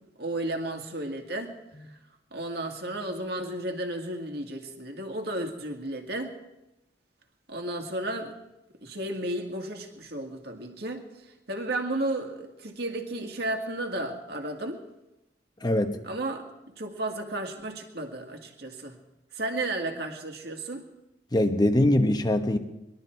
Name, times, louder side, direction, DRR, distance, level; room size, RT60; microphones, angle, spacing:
voice 1, 0.2-1.5 2.3-6.3 7.5-8.3 8.8-11.0 11.5-14.8 16.0-19.0 19.3-20.8, right 1 dB, 60° right, 3 dB, 2.0 m, -33 dB
voice 2, 15.6-16.0 21.3-22.6, left 1 dB, 25° left, 7 dB, 1.0 m, -22 dB
21.0 x 12.5 x 4.6 m, 0.94 s
head